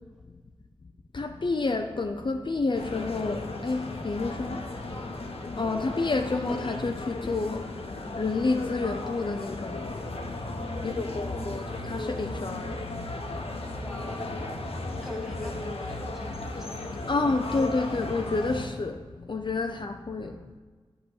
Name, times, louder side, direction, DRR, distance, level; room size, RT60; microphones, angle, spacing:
voice 1, 1.1-4.7 5.6-7.6 8.2-10.0 10.8-13.1 13.4-13.5 17.1-20.5, left 3 dB, 45° left, 5 dB, 0.6 m, -29 dB
sound 1, 2.7-18.7, left 2 dB, 65° left, 1.1 m, -35 dB
voice 2, 10.6-11.6 13.7-14.4 15.0-17.1 20.2-20.3, left 1 dB, ahead, 3 dB, 1.3 m, -44 dB
8.6 x 5.1 x 7.1 m, 1.5 s
cardioid pair, 45°, 11 cm